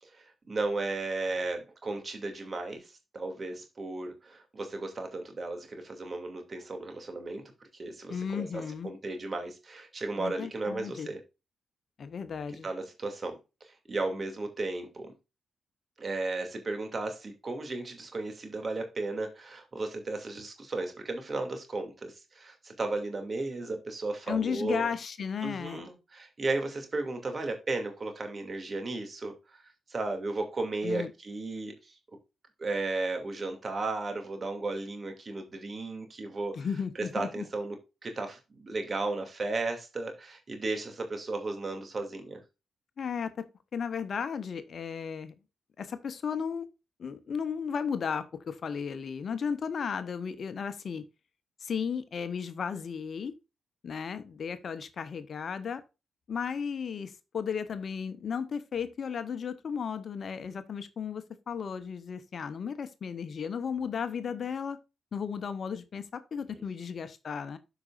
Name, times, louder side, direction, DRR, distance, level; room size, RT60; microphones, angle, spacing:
voice 1, 0.0-8.5 8.8-11.2 12.6-15.1 16.0-24.9 25.4-29.6 29.9-32.0 32.6-36.6 37.1-37.8 38.0-42.4 66.5-66.6, right 2 dB, 45° right, 2.6 m, -35 dB
voice 2, 8.1-8.9 10.2-11.1 12.0-12.7 24.3-25.8 30.8-31.1 36.5-37.4 43.0-43.4 43.7-45.3 45.8-46.7 47.0-51.0 51.6-53.3 53.8-55.8 56.3-64.8 65.1-67.6, left 6 dB, 60° left, 0.8 m, -34 dB
13.0 x 5.0 x 2.5 m
hypercardioid pair, 40°, 0 cm